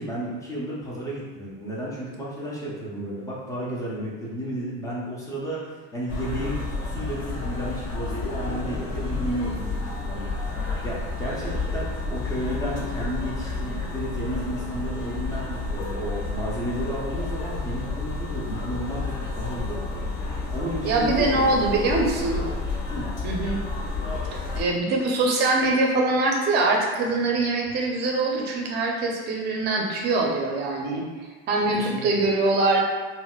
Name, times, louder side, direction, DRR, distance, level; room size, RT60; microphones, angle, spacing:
voice 1, 0.0-6.5 6.8-20.0 20.5-22.2 22.9-23.1 31.9-32.0, right 1 dB, 10° left, -6 dB, 0.5 m, -33 dB
sound 1, 6.1-24.6, left 3 dB, 40° left, 0.7 m, -30 dB
voice 2, 20.8-22.4 23.2-23.6 24.5-31.0 31.5-32.8, right 2 dB, 35° right, -1 dB, 0.5 m, -23 dB
4.0 x 2.1 x 2.3 m, 1.4 s
cardioid pair, 155°, 29 cm